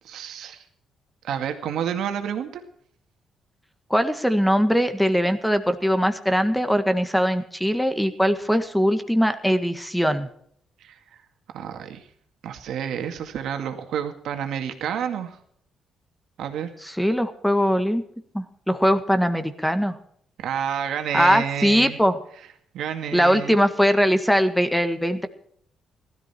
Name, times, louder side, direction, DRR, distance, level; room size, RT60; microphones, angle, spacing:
voice 1, 0.0-0.6 1.2-2.6 10.8-11.0 11.5-12.0 12.4-15.4 16.4-16.7 20.4-22.0 22.7-23.6, right 8 dB, 75° right, 6 dB, 2.2 m, -29 dB
voice 2, 3.9-10.3 16.8-18.0 18.3-20.0 21.1-22.2 23.1-25.3, equal, ahead, 9 dB, 1.6 m, -21 dB
16.0 x 13.5 x 4.5 m, 0.65 s
cardioid pair, 90°, 0 cm